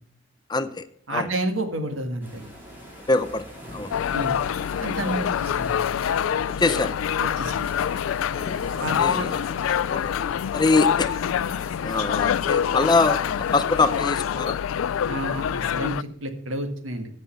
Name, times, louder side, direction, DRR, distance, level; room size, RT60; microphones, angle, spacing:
voice 1, 0.5-1.3 3.1-3.9 6.6-7.0 8.3-9.4 9.7-10.1 10.5-11.2 11.8-14.6, left 3 dB, 20° left, 13 dB, 0.5 m, -24 dB
voice 2, 1.1-2.4 4.1-4.4 4.8-5.8 7.2-7.7 8.8-9.3 15.1-17.1, right 1 dB, 85° right, 6 dB, 1.7 m, -30 dB
sound 1, 2.2-14.2, equal, 10° right, 3.6 m, -43 dB
sound 2, 3.9-16.0, left 8 dB, 85° left, 0.3 m, -26 dB
15.5 x 5.5 x 5.6 m, 0.66 s
head